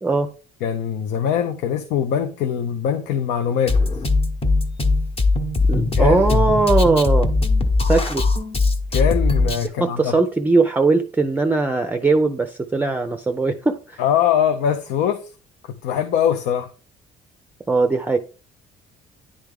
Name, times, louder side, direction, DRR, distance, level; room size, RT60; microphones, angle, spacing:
voice 1, 0.6-3.8 5.9-6.4 8.9-10.1 14.0-15.3 15.7-16.7, left 8 dB, 85° left, 0.6 m, -22 dB
Drum kit, 3.7-9.7, left 3 dB, 35° left, 1.0 m, -20 dB
voice 2, 5.7-7.3 7.9-8.2 9.8-14.0 17.7-18.2, right 3 dB, 10° right, 0.5 m, -20 dB
10.0 x 3.5 x 3.5 m
cardioid pair, 110°, 17 cm